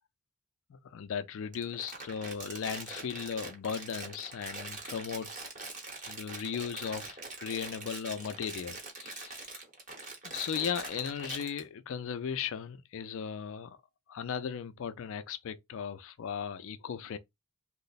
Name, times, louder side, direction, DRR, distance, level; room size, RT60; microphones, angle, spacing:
voice 1, 0.7-5.3 6.1-9.6 10.2-13.8 14.1-17.2, left 7 dB, 60° left, 0.3 m, -37 dB
Crumpling crinkling, 1.5-11.6, right 3 dB, 35° right, 0.9 m, -43 dB
3.1 x 2.0 x 3.9 m
head